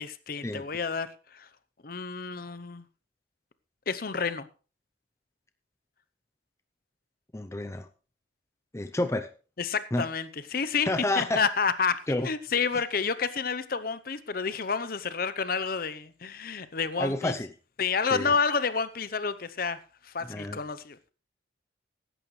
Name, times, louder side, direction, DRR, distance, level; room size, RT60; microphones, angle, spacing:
voice 1, 0.0-1.5 1.8-2.8 3.9-4.5 9.6-10.9 11.2-17.3 17.8-19.8 20.0-21.1, left 5 dB, 50° left, 0.7 m, -29 dB
voice 2, 7.3-7.9 8.7-9.3 9.9-10.1 10.9-11.4 12.1-12.3 17.0-17.5 18.1-18.3 20.3-20.6, left 1 dB, 15° left, 0.5 m, -29 dB
15.5 x 11.0 x 3.2 m
head